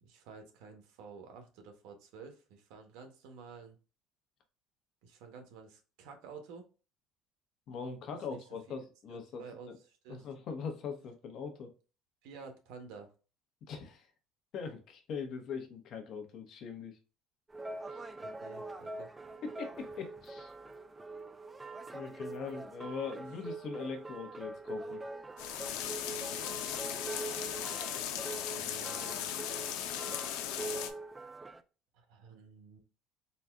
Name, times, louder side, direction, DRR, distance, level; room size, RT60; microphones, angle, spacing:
voice 1, 0.0-3.8 5.0-6.7 8.3-8.7 9.1-10.3 12.2-13.1 18.2-19.1 28.6-29.3 31.9-32.8, right 5 dB, 80° right, 1.1 m, -51 dB
voice 2, 7.7-9.8 10.1-11.7 13.7-14.1 14.5-17.0 17.9-18.0 19.4-20.5 21.9-25.0, left 5 dB, 50° left, 1.0 m, -41 dB
sound 1, 17.5-31.6, right 2 dB, 15° right, 0.3 m, -44 dB
sound 2, 25.4-30.9, left 10 dB, 90° left, 0.5 m, -37 dB
4.2 x 2.3 x 3.5 m
cardioid pair, 145°, 0 cm